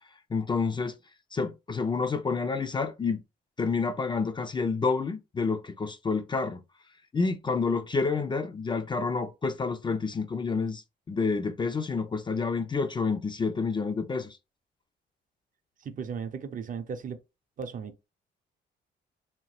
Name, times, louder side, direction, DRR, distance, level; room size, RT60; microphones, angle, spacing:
voice 1, 0.3-0.9 1.3-3.2 3.6-6.6 7.1-10.8 11.1-14.4, left 4 dB, 25° left, 0.4 m, -29 dB
voice 2, 15.8-17.2 17.6-18.1, right 6 dB, 45° right, 0.5 m, -36 dB
2.8 x 2.1 x 3.0 m
cardioid pair, 90°, 20 cm